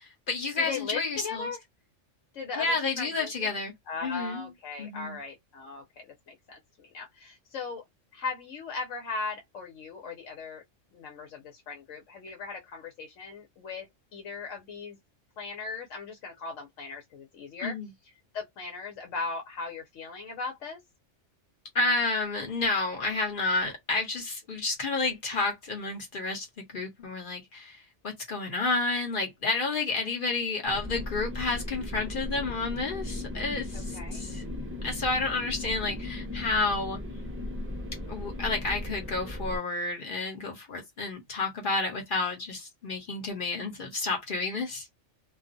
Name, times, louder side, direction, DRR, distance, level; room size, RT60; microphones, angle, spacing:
voice 1, 0.0-1.5 2.6-3.7 4.0-4.5 4.8-5.2 17.6-17.9 21.7-27.8 28.0-34.4 34.8-37.0 38.1-44.9, left 3 dB, 50° left, 1.0 m, -30 dB
voice 2, 0.6-1.6 2.3-3.5 3.9-7.8 8.1-10.6 10.9-15.0 15.4-17.8 18.3-20.8 33.7-34.2, left 4 dB, 90° left, 1.1 m, -38 dB
sound 1, 30.6-39.6, left 1 dB, 20° right, 0.3 m, -37 dB
2.4 x 2.3 x 2.6 m
omnidirectional pair, 1.3 m